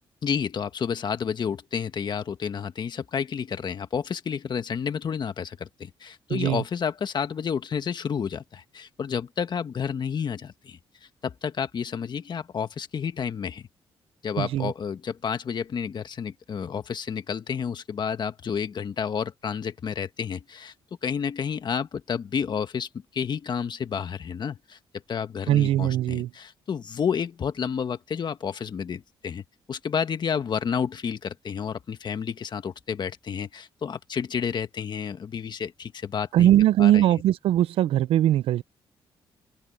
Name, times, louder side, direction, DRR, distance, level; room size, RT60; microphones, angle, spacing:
voice 1, 0.2-10.8 11.2-13.7 14.2-20.7 21.0-24.8 25.1-36.5 36.8-37.1, left 7 dB, 50° left, 1.5 m, -30 dB
voice 2, 6.3-6.6 14.4-14.7 25.5-26.3 36.3-38.6, right 12 dB, 85° right, 0.4 m, -21 dB
open air
cardioid pair, 90°, 9 cm